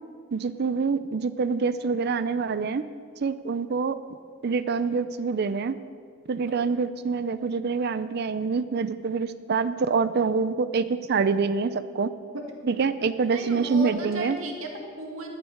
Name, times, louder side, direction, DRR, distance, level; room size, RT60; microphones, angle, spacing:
voice 1, 0.3-2.8 3.2-4.0 4.4-5.8 6.3-12.1 12.7-14.4, right 5 dB, 50° right, 13 dB, 0.4 m, -26 dB
voice 2, 12.3-12.7 13.3-15.3, right 1 dB, 80° right, 2 dB, 1.9 m, -35 dB
11.5 x 9.3 x 6.4 m, 2.1 s
head